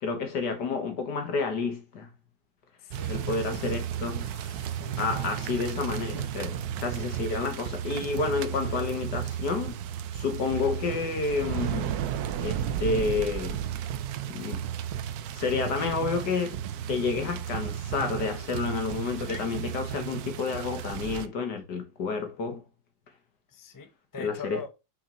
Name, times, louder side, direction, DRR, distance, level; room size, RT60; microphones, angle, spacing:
voice 1, 0.0-2.1 3.1-4.3 5.0-9.8 10.1-12.0 12.4-13.6 14.3-14.6 15.3-16.6 16.9-22.6 24.2-24.6, left 4 dB, 65° left, 2.1 m, -30 dB
voice 2, 2.8-3.7 4.2-5.2 19.2-19.4 23.5-24.7, left 4 dB, 25° left, 0.4 m, -43 dB
sound 1, 2.9-21.3, right 10 dB, 70° right, 1.0 m, -33 dB
6.2 x 5.0 x 3.1 m
omnidirectional pair, 2.0 m